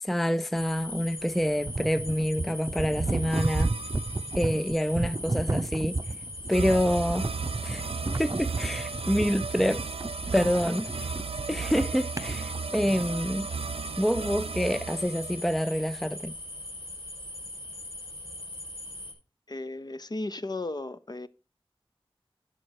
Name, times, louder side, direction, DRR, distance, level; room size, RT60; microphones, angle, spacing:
voice 1, 0.0-3.7 4.4-6.0 6.5-7.3 7.6-7.8 8.2-9.8 10.3-11.1 11.5-13.5 14.0-16.3, equal, ahead, 0.4 m, -27 dB
sound 1, 0.5-19.1, left 1 dB, 60° left, 5.0 m, -41 dB
sound 2, 1.6-12.8, right 2 dB, 30° right, 0.6 m, -32 dB
sound 3, 3.0-4.9 6.5-16.2, right 5 dB, 75° right, 0.4 m, -36 dB
voice 2, 19.5-21.3, left 2 dB, 45° left, 0.7 m, -35 dB
10.5 x 6.2 x 4.7 m
wide cardioid pair, 50°, 10 cm